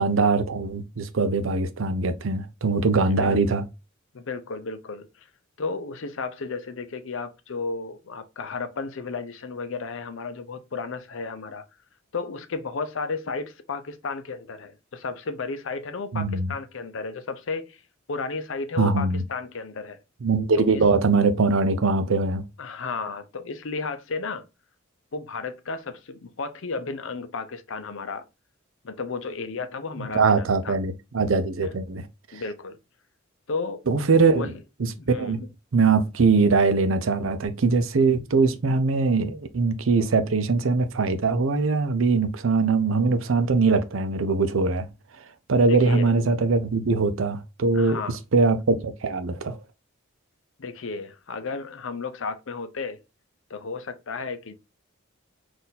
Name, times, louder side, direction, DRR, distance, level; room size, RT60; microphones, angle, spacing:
voice 1, 0.0-3.6 16.1-16.5 18.8-19.2 20.2-22.4 30.1-32.0 32.3-32.4 33.9-34.5 34.8-35.4 35.7-44.9 45.5-49.6, right 4 dB, 70° right, 0.6 m, -22 dB
voice 2, 2.9-3.6 4.1-5.3 5.6-11.6 12.1-17.8 18.1-20.0 20.6-20.8 22.6-24.5 25.1-28.2 28.8-30.8 31.6-31.8 32.3-32.8 33.5-33.8 34.3-34.6 35.0-35.4 45.7-46.1 47.7-48.2 50.6-53.0 53.5-54.6, left 4 dB, 65° left, 0.6 m, -33 dB
4.2 x 2.6 x 3.8 m
head